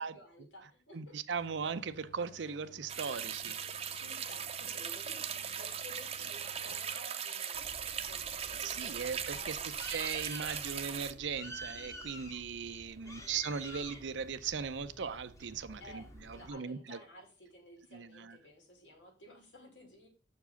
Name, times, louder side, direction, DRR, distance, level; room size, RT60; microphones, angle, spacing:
voice 1, 0.0-1.2 3.9-9.7 13.0-13.4 15.8-16.1 16.3-20.1, left 1 dB, 90° left, 2.7 m, -54 dB
voice 2, 0.9-4.0 8.6-9.6 9.9-17.0 17.9-18.4, right 6 dB, 85° right, 0.6 m, -39 dB
sound 1, 1.4-7.0, left 5 dB, 55° left, 0.7 m, -58 dB
sound 2, 2.9-11.1, right 8 dB, 35° right, 0.6 m, -39 dB
Bird, 7.5-16.5, equal, 15° left, 1.1 m, -50 dB
6.7 x 4.8 x 5.6 m
head